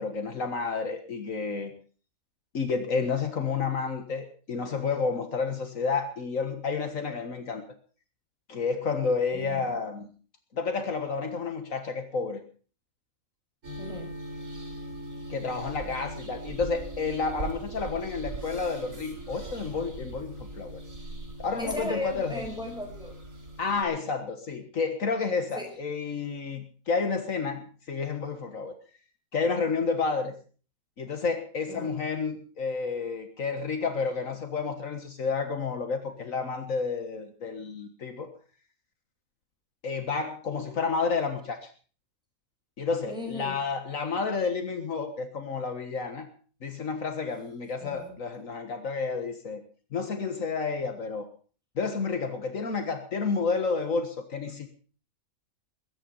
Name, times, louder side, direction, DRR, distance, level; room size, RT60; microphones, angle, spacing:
voice 1, 0.0-1.7 2.5-7.6 8.5-10.1 10.5-12.4 15.3-20.8 21.4-22.4 23.6-28.7 29.3-30.3 31.0-38.3 39.8-41.7 42.8-46.3 46.6-49.6 49.9-51.3 51.8-54.7, left 4 dB, 70° left, 7 dB, 1.9 m, -30 dB
voice 2, 9.3-9.7 13.8-14.1 21.6-23.2 25.6-25.7 31.7-32.0 43.1-43.6 47.8-48.1, left 1 dB, 5° right, 1 dB, 5.7 m, -36 dB
sound 1, 13.6-23.8, right 2 dB, 70° right, 4.5 m, -40 dB
21.5 x 10.0 x 5.5 m, 0.41 s
omnidirectional pair, 1.4 m